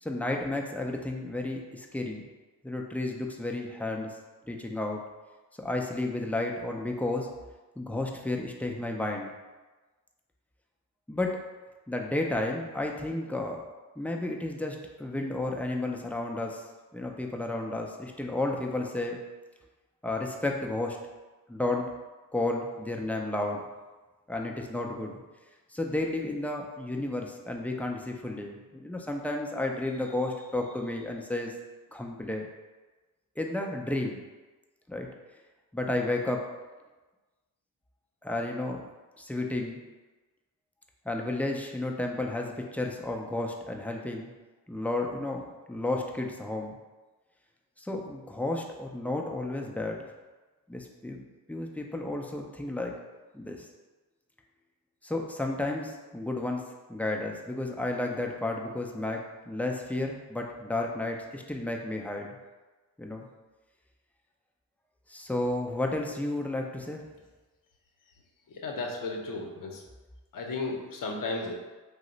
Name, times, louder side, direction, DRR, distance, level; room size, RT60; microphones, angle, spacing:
voice 1, 0.0-2.2 2.6-4.1 4.5-5.0 5.6-7.3 7.8-9.3 11.1-11.4 11.9-13.6 14.0-16.6 16.9-19.2 20.0-21.0 21.5-21.9 22.3-23.6 24.3-25.2 25.7-31.5 31.9-32.5 33.4-34.2 34.9-35.1 35.7-36.5 38.2-38.8 39.2-39.8 41.1-44.3 44.7-46.8 47.8-50.0 50.7-51.2 51.5-53.0 53.3-53.7 55.0-56.6 56.9-62.3 63.0-63.3 65.1-67.0, left 2 dB, 5° left, 1 dB, 0.4 m, -32 dB
voice 2, 68.6-69.8 70.3-71.5, left 3 dB, 55° left, 1 dB, 0.7 m, -34 dB
2.8 x 2.0 x 3.9 m, 1.2 s
cardioid pair, 60°, 40 cm